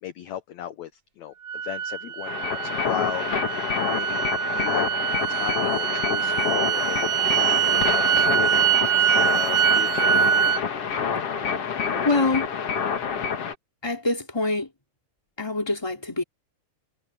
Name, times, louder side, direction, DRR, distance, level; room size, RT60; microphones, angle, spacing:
voice 1, 0.0-3.3 3.9-4.2 4.5-5.0 5.3-8.7 9.3-10.3, left 11 dB, 65° left, 2.0 m, -36 dB
sound 1, 1.5-10.6, right 9 dB, 60° right, 1.5 m, -24 dB
sound 2, 2.2-13.5, left 6 dB, 50° left, 2.6 m, -27 dB
voice 2, 12.0-12.4 13.8-14.7 15.4-16.2, left 2 dB, 5° left, 3.2 m, -24 dB
omnidirectional pair, 3.9 m